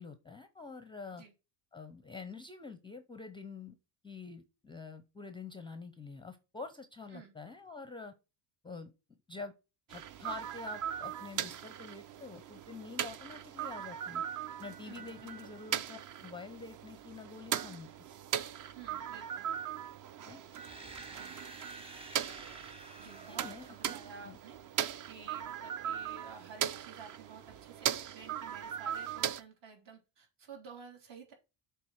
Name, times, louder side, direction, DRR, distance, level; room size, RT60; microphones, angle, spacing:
voice 1, 0.0-1.2 1.7-3.8 4.0-8.1 8.6-8.9 9.3-9.5 9.9-14.2 14.6-17.9 20.2-20.4 23.0-23.9 24.2-24.4, left 4 dB, 10° left, 10 dB, 0.5 m, -47 dB
sound 1, 9.9-29.4, right 9 dB, 40° right, 0.6 m, -39 dB
voice 2, 14.8-15.5 18.7-19.5 21.1-21.3 23.0-31.3, right 5 dB, 60° right, 2 dB, 3.4 m, -52 dB
sound 2, 20.5-24.4, right 2 dB, 10° right, 1.0 m, -51 dB
7.5 x 3.4 x 6.2 m, 0.29 s
cardioid pair, 130°, 48 cm